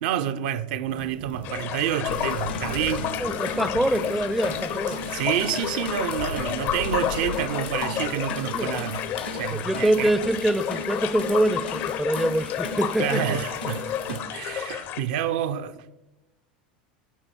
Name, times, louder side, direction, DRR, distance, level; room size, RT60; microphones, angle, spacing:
voice 1, 0.0-3.1 5.1-9.0 9.3-10.1 13.0-15.9, right 10 dB, 65° right, 0.5 m, -28 dB
sound 1, 0.8-10.3, right 2 dB, 80° right, 2.1 m, -45 dB
sound 2, 1.4-15.0, left 10 dB, 50° left, 0.5 m, -31 dB
sound 3, 2.1-14.2, left 2 dB, 90° left, 1.1 m, -36 dB
voice 2, 3.2-5.0 8.5-8.8 9.5-13.4, right 1 dB, ahead, 0.3 m, -25 dB
11.5 x 4.0 x 4.4 m
hypercardioid pair, 90°, 5 cm